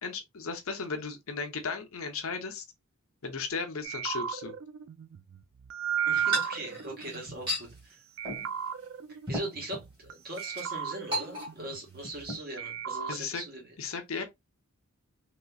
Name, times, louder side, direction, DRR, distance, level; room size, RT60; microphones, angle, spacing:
voice 1, 0.0-2.6 3.2-4.5 13.1-13.4 13.8-14.2, left 4 dB, 70° left, 0.7 m, -35 dB
sound 1, 3.8-7.8 8.2-10.1 10.4-12.3 12.6-13.2, right 8 dB, 60° right, 0.3 m, -35 dB
voice 2, 6.0-8.0 9.1-13.7, right 1 dB, 45° right, 1.5 m, -40 dB
sound 2, 6.2-7.7 8.2-8.5 8.8-8.9 9.3-9.9 10.3-10.6 11.1-11.8 12.0-12.4, equal, 25° right, 1.6 m, -35 dB
3.0 x 2.9 x 2.3 m
head